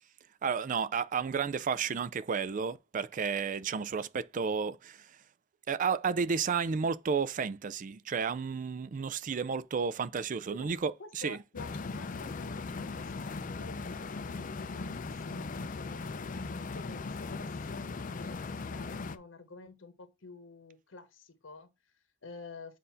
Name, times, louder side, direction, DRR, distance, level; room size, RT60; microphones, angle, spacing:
voice 1, 0.4-5.1 5.7-11.4, right 6 dB, 40° right, 0.4 m, -32 dB
voice 2, 11.0-16.3 16.7-17.8 18.1-22.8, left 3 dB, 75° left, 1.0 m, -50 dB
sound 1, 11.6-19.2, left 4 dB, 40° left, 0.5 m, -38 dB
7.6 x 2.6 x 5.5 m
head